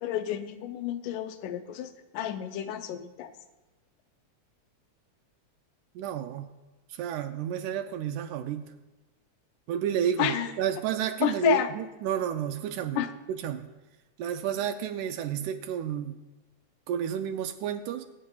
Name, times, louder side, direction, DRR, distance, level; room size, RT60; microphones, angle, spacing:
voice 1, 0.0-3.3 10.2-10.5 11.2-11.7 13.0-13.1, left 11 dB, 85° left, 9 dB, 2.2 m, -30 dB
voice 2, 6.0-6.5 6.9-8.7 9.7-13.0 13.3-13.7 14.2-16.2 16.9-18.0, right 9 dB, 85° right, 7 dB, 2.0 m, -31 dB
22.0 x 8.8 x 2.3 m, 1.1 s
omnidirectional pair, 3.5 m